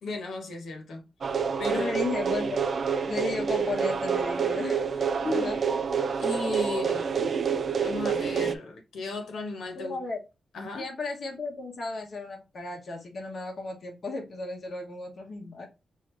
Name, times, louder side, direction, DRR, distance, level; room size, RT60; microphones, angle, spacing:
voice 1, 0.0-1.0 1.6-1.9 5.2-5.5 6.2-7.1 7.8-10.0 10.5-10.9, left 3 dB, 90° left, 1.2 m, -34 dB
sound 1, 1.2-8.5, right 6 dB, 45° right, 0.4 m, -28 dB
voice 2, 1.6-2.6 3.1-4.8 5.3-5.6 9.8-10.2 10.7-15.7, left 3 dB, 45° left, 1.1 m, -34 dB
4.8 x 2.7 x 3.2 m
wide cardioid pair, 180°, 0 cm